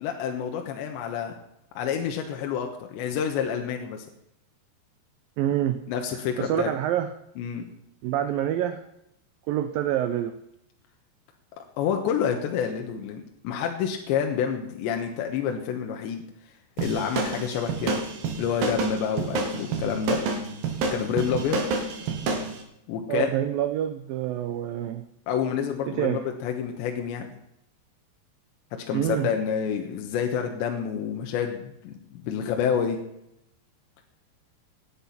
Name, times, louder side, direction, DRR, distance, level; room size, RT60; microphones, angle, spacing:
voice 1, 0.0-1.3 1.8-4.1 5.9-6.7 7.4-7.7 11.6-16.2 16.8-18.0 18.4-20.2 20.9-21.6 22.9-23.3 25.3-27.3 28.9-33.0, left 7 dB, 80° left, 3 dB, 3.5 m, -28 dB
voice 2, 5.4-5.8 6.4-7.1 8.0-8.8 9.5-10.4 23.1-25.0 25.9-26.2 28.9-29.3, right 11 dB, 90° right, 10 dB, 2.0 m, -26 dB
sound 1, 16.8-22.5, right 3 dB, 60° right, 3.8 m, -28 dB
17.5 x 10.5 x 5.8 m, 0.80 s
omnidirectional pair, 5.1 m